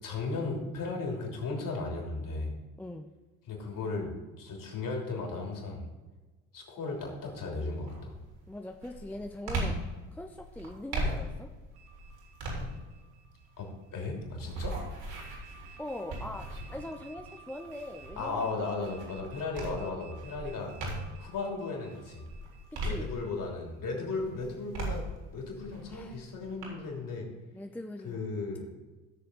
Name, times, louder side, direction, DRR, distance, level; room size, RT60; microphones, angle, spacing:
voice 1, 0.0-2.5 3.4-5.9 6.5-8.2 13.6-14.7 18.2-20.7 21.2-22.2 22.8-25.0 25.3-27.3 28.0-28.7, left 3 dB, 45° left, 1 dB, 3.2 m, -36 dB
voice 2, 2.8-3.1 8.5-9.8 10.1-11.5 15.8-18.6 22.9-23.1 25.9-26.2 27.5-28.2, left 1 dB, 5° left, 5 dB, 0.5 m, -41 dB
sound 1, 6.9-7.3 7.8-21.3 21.8-23.6 24.1-26.6, right 1 dB, 55° right, 3.8 m, -39 dB
sound 2, 11.7-14.3 15.2-23.5, right 7 dB, 75° right, 1.2 m, -55 dB
16.0 x 6.6 x 3.9 m, 1.2 s
figure-of-eight pair, 60°, 46 cm